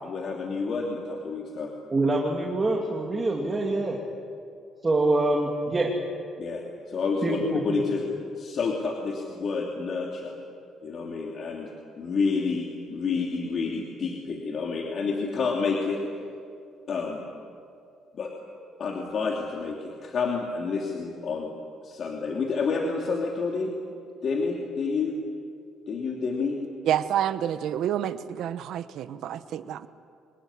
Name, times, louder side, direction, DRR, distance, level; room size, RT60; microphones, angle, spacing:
voice 1, 0.0-1.7 6.4-8.1 8.4-10.3 10.8-16.2 16.9-17.2 18.1-18.3 18.8-21.5 21.8-23.7 24.2-25.1 25.9-26.6, left 4 dB, 50° left, 0 dB, 3.0 m, -29 dB
voice 2, 1.9-4.0 4.8-5.9 7.2-7.8, right 2 dB, 25° right, -1 dB, 2.6 m, -25 dB
voice 3, 26.9-29.9, right 10 dB, 70° right, 12 dB, 1.0 m, -28 dB
25.0 x 20.0 x 10.0 m, 2.4 s
cardioid pair, 105°, 0 cm